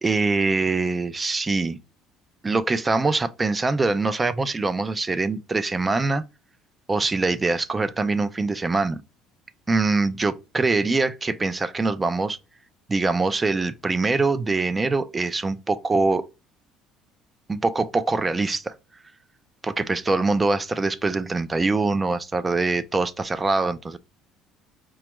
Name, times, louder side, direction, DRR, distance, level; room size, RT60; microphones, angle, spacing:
voice 1, 0.0-1.8 2.4-6.2 6.9-9.0 9.7-12.4 12.9-16.3 17.5-18.7 19.8-24.0, right 3 dB, 15° right, 0.3 m, -23 dB
5.0 x 2.3 x 2.9 m
cardioid pair, 150°, 0 cm